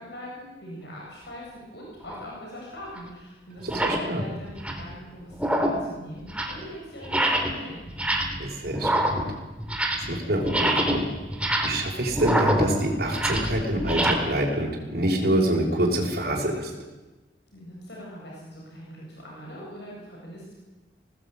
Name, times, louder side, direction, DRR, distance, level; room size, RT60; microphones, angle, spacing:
voice 1, 0.0-7.8 17.5-20.6, equal, 65° left, -3 dB, 7.9 m, -42 dB
sound 1, 2.0-2.2 3.0-3.1 3.6-4.1 4.5-4.9 5.3-5.9 6.2-6.6 7.0-7.6 7.9-8.5 8.7-10.2 10.4-14.1, right 1 dB, 5° right, 2.9 m, -26 dB
voice 2, 3.7-4.2 8.4-9.3 10.1-11.0 11.6-16.7, right 1 dB, 55° right, -3 dB, 5.8 m, -26 dB
21.5 x 18.5 x 9.2 m, 1.2 s
head